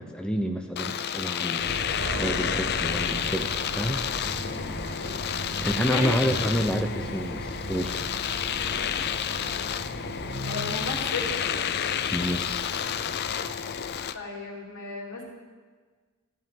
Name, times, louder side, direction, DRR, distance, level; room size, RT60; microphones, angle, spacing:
voice 1, 0.0-1.7 2.2-3.5 3.8-4.0 5.6-8.0 12.1-12.6, equal, 5° left, 3 dB, 0.6 m, -28 dB
Domestic sounds home sounds, 0.8-14.2, left 9 dB, 45° left, 0.4 m, -30 dB
sound 1, 1.6-14.0, right 1 dB, 50° right, 1.3 m, -37 dB
voice 2, 5.8-6.3 10.4-11.3 14.1-15.2, left 2 dB, 75° left, -4 dB, 3.3 m, -33 dB
14.5 x 5.6 x 9.2 m, 1.5 s
head